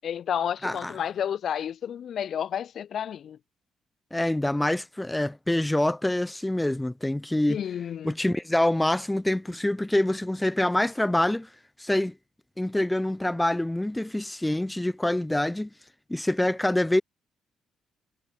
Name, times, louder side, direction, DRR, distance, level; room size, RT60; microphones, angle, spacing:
voice 1, 0.0-3.4 7.5-8.1, left 9 dB, 60° left, 7.9 m, -31 dB
voice 2, 0.6-0.9 4.1-7.6 8.0-11.5 11.8-12.1 12.6-15.7 16.1-17.0, left 1 dB, 10° left, 7.0 m, -25 dB
cardioid pair, 90°, 0 cm